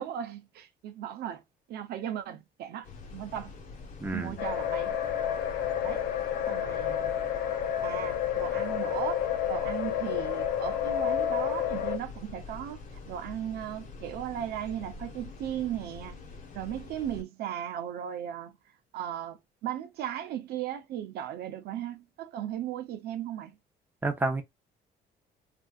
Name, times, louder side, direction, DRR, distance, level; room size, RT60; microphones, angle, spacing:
voice 1, 0.0-1.4 1.7-3.5 4.1-5.0 5.8-6.0 6.5-7.1 7.8-16.2 16.5-18.6 18.9-23.5, right 10 dB, 70° right, 0.7 m, -37 dB
sound 1, 2.8-17.2, left 4 dB, 50° left, 1.3 m, -45 dB
voice 2, 4.0-4.3 24.0-24.4, right 2 dB, 10° right, 0.8 m, -29 dB
sound 2, 4.4-12.0, left 10 dB, 75° left, 0.7 m, -30 dB
3.4 x 2.6 x 2.3 m
cardioid pair, 110°, 17 cm